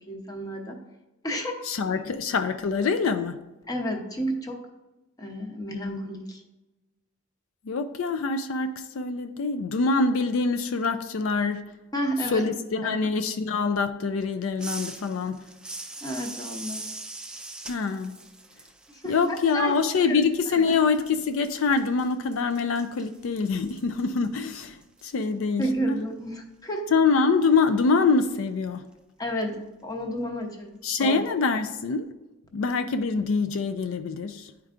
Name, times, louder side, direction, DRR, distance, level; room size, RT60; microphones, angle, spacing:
voice 1, 0.1-0.8 1.2-1.6 3.7-4.6 5.2-6.4 11.9-12.4 12.8-13.0 16.0-16.9 18.9-19.7 20.0-20.2 20.5-20.6 25.3-26.8 29.2-31.2, equal, 20° left, 0.8 m, -31 dB
voice 2, 1.6-3.4 7.7-11.7 12.3-15.4 17.7-18.2 19.0-26.0 26.9-28.9 30.8-32.1 32.5-34.5, left 4 dB, 75° left, 0.4 m, -25 dB
sound 1, 14.6-20.1 20.4-25.3, right 2 dB, 5° right, 0.3 m, -42 dB
10.5 x 4.5 x 2.5 m
head